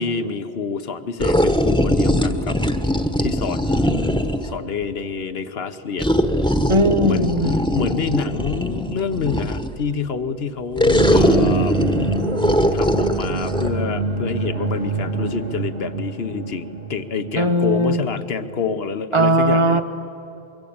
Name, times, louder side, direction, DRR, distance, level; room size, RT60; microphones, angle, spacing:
voice 1, 0.0-2.6 3.2-4.1 4.4-6.2 7.0-7.4 7.7-11.8 12.7-19.8, left 5 dB, 75° left, 11 dB, 1.3 m, -27 dB
sound 1, 1.2-4.6 6.0-9.8 10.8-13.7, equal, 5° left, 1.1 m, -20 dB
voice 2, 6.7-7.6 17.3-18.0 19.1-19.8, right 1 dB, 30° right, 8 dB, 1.3 m, -18 dB
sound 2, 10.8-18.6, right 4 dB, 75° right, 2.0 m, -26 dB
24.0 x 23.5 x 8.8 m, 2.8 s
omnidirectional pair, 1.0 m